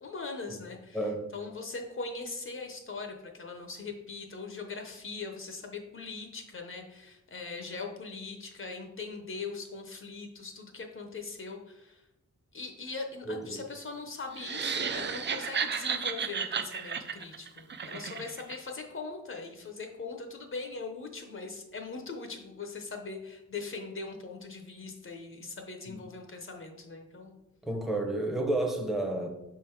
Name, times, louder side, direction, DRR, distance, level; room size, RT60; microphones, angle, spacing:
voice 1, 0.0-12.0 12.5-27.4, left 4 dB, 45° left, 4 dB, 0.6 m, -41 dB
voice 2, 0.9-1.3 13.3-13.6 25.9-26.0 27.6-29.3, right 2 dB, ahead, 1 dB, 0.7 m, -31 dB
sound 1, 14.3-18.6, right 6 dB, 40° right, 0.4 m, -33 dB
5.8 x 3.7 x 4.4 m, 0.94 s
wide cardioid pair, 155°, 30 cm